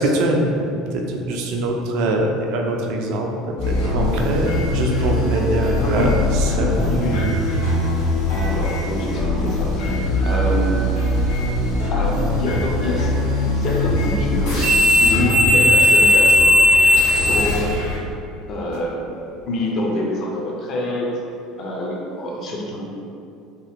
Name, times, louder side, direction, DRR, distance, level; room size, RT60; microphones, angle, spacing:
voice 1, 0.0-6.9 15.4-15.7 17.1-17.3, right 1 dB, 65° right, 1 dB, 0.4 m, -23 dB
sound 1, 3.6-18.0, left 1 dB, 80° left, 1.1 m, -19 dB
voice 2, 5.8-6.1 6.8-7.2 8.3-10.8 11.9-13.1 13.6-14.6 15.0-16.6 17.1-17.7 18.5-19.0 19.5-21.1 21.6-22.8, left 1 dB, 50° left, -1 dB, 0.5 m, -26 dB
2.9 x 2.7 x 2.4 m, 2.7 s
hypercardioid pair, 70°, 0 cm